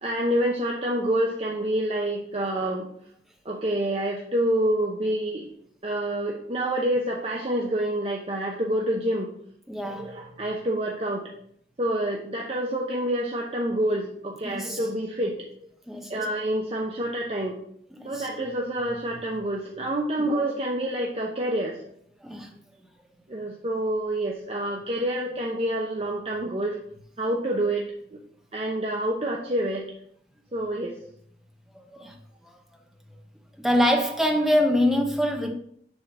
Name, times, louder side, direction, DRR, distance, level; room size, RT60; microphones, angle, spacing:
voice 1, 0.0-2.9 3.4-5.4 5.8-9.3 9.9-11.3 11.8-15.4 16.1-17.6 18.0-21.8 23.3-26.8 27.2-28.2 28.5-29.9 30.5-30.9, right 1 dB, 30° right, -1 dB, 0.7 m, -27 dB
voice 2, 9.7-10.1 14.4-14.8 15.9-16.2 17.9-18.3 22.2-22.5 31.7-32.2 32.4-32.6 33.6-35.5, left 1 dB, ahead, 2 dB, 0.8 m, -25 dB
7.0 x 3.7 x 5.4 m, 0.67 s
head